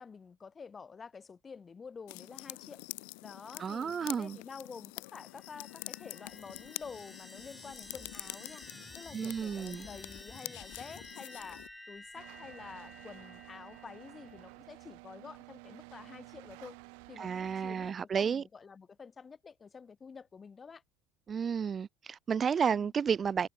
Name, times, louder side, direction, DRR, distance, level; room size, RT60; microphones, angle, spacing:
voice 1, 0.0-2.8 3.2-8.6 8.9-11.6 11.9-16.8 17.1-20.8 22.7-22.9, left 5 dB, 25° left, 1.5 m, -49 dB
sound 1, 2.1-11.7, left 32 dB, 80° left, 0.7 m, -46 dB
voice 2, 3.6-4.4 9.1-9.9 17.2-18.4 21.3-23.5, right 7 dB, 30° right, 0.3 m, -32 dB
sound 2, 5.3-14.5, left 1 dB, 5° left, 1.6 m, -52 dB
sound 3, 12.1-17.9, right 36 dB, 75° right, 2.8 m, -52 dB
supercardioid pair, 120°, 0 cm